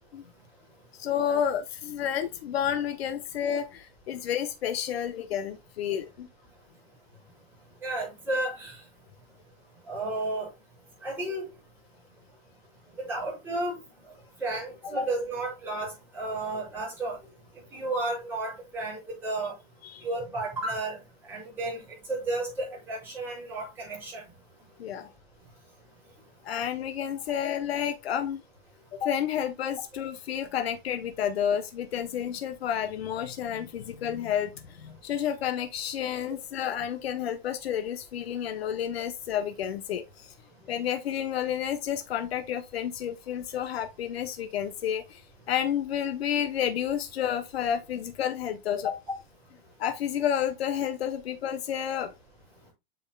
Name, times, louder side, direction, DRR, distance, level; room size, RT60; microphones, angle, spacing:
voice 1, 1.0-6.3 19.8-20.0 24.8-25.1 26.4-28.4 28.9-40.3 40.7-45.2 45.5-49.0 49.8-52.1, left 9 dB, 85° left, 1.0 m, -30 dB
voice 2, 7.8-8.7 9.9-10.5 11.0-11.4 13.0-13.8 14.4-17.2 17.7-19.5 20.0-21.0 21.3-21.8 22.1-24.2, right 2 dB, 5° right, 5.3 m, -32 dB
8.5 x 6.3 x 2.3 m
supercardioid pair, 175°, 30 cm